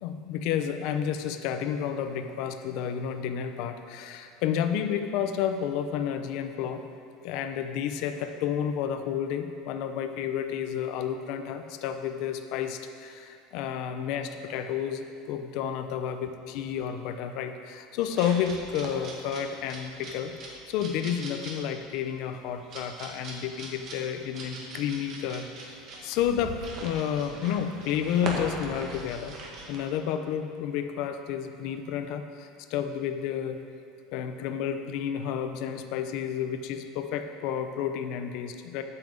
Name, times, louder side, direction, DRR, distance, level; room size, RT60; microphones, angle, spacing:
voice 1, 0.0-6.8 7.2-29.4 29.7-33.6 34.1-38.8, left 8 dB, 60° left, 7 dB, 0.7 m, -31 dB
sound 1, 18.0-29.9, right 2 dB, 40° right, 1.8 m, -41 dB
9.1 x 5.9 x 7.8 m, 2.6 s
supercardioid pair, 150°, 0 cm